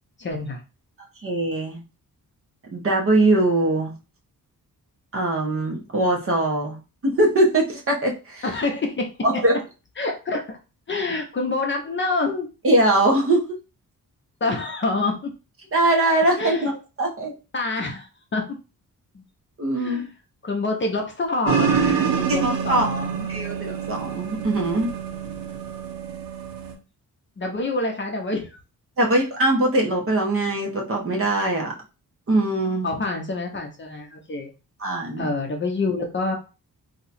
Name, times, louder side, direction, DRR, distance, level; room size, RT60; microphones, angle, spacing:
voice 1, 0.2-0.6 8.4-9.1 10.0-10.6 10.9-12.5 14.4-15.3 16.4-16.7 17.5-18.4 19.1-19.2 19.8-20.1 20.4-23.3 27.4-28.6 32.8-34.5 35.2-36.3, left 3 dB, 35° left, 2 dB, 0.7 m, -27 dB
voice 2, 1.2-1.8 2.7-3.9 5.1-6.8 7.0-8.4 9.2-9.5 12.6-13.4 15.7-16.7 17.0-17.3 19.6-20.1 22.3-22.8 23.3-24.9 29.0-31.7 32.3-32.9 34.8-35.3, right 1 dB, 40° right, 0 dB, 0.9 m, -21 dB
sound 1, 21.4-26.7, right 7 dB, 75° right, 0.7 m, -26 dB
2.8 x 2.3 x 4.1 m, 0.31 s
wide cardioid pair, 140°, 35 cm